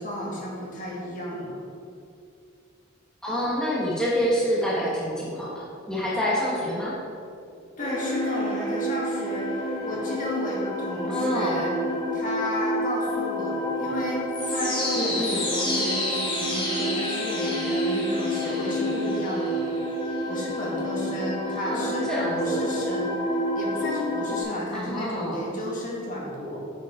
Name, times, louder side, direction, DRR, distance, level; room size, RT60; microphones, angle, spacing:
voice 1, 0.0-1.6 7.8-11.7 12.1-14.2 14.5-19.6 20.3-23.2 23.6-26.6, equal, 45° left, -4 dB, 1.7 m, -33 dB
voice 2, 3.2-7.0 11.1-11.6 15.0-15.4 21.5-22.7 24.7-25.4, equal, 5° left, -7 dB, 1.4 m, -27 dB
sound 1, 7.8-24.4, equal, 25° left, 1.8 m, -28 dB
9.1 x 6.7 x 3.7 m, 2.5 s
head